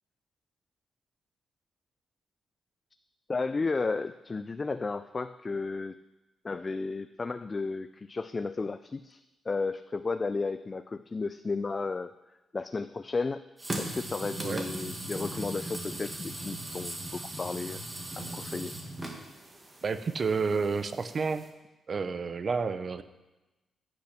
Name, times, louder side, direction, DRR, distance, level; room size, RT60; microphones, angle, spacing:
voice 1, 3.3-6.0 6.4-12.1 12.5-13.4 13.8-17.8 18.2-18.7, left 4 dB, 25° left, 12 dB, 0.3 m, -33 dB
sound 1, 13.6-21.5, right 1 dB, 15° right, 1.6 m, -39 dB
voice 2, 19.8-21.5 21.9-23.0, right 5 dB, 40° right, 11 dB, 0.7 m, -30 dB
15.0 x 6.1 x 5.9 m, 1.1 s
cardioid pair, 135°, 0 cm